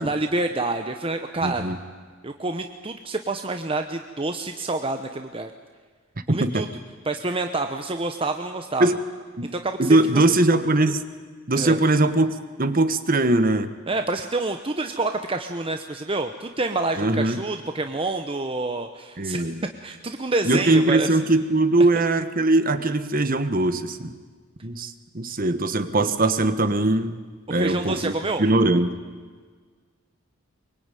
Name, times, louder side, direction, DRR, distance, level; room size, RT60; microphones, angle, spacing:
voice 1, 0.0-1.8 2.2-5.5 6.3-6.7 7.0-8.9 9.4-10.2 11.6-11.8 13.9-19.4 19.8-21.2 27.6-28.4, right 2 dB, 25° right, 6 dB, 1.0 m, -28 dB
voice 2, 1.4-1.7 6.3-6.6 8.8-9.0 9.4-9.5 9.8-11.0 11.5-13.7 17.0-17.4 19.2-19.6 20.4-24.1 24.6-27.2 27.5-28.1 28.4-29.0, right 2 dB, 40° right, 11 dB, 1.4 m, -21 dB
23.5 x 23.5 x 9.2 m, 1.5 s
head